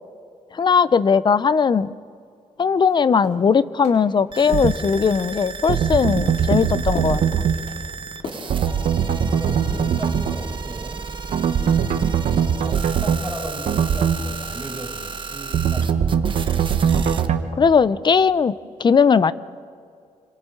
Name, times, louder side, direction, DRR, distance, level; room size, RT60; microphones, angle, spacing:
voice 1, 0.5-1.9 2.6-7.2 17.6-18.5 18.8-19.3, left 6 dB, 40° left, 16 dB, 0.6 m, -18 dB
sound 1, 2.8-2.9 3.2-3.5 3.8-4.0 4.5-4.7 5.1-5.4 5.7-6.0 6.3-6.5 6.9-7.2 7.5-7.8 8.2-8.5 8.8-9.2 9.5-9.7, left 3 dB, 80° left, 4.1 m, -36 dB
sound 2, 4.3-17.3, right 5 dB, 45° right, 1.3 m, -34 dB
sound 3, 4.5-4.8 5.7-7.6 8.5-10.4 11.3-13.2 13.7-14.2 15.5-17.4, right 7 dB, 75° right, 1.3 m, -21 dB
voice 2, 8.4-11.0 11.4-11.9 12.3-16.2, right 2 dB, 10° right, -5 dB, 7.1 m, -36 dB
27.0 x 26.0 x 3.9 m, 2.3 s
cardioid pair, 100°, 12 cm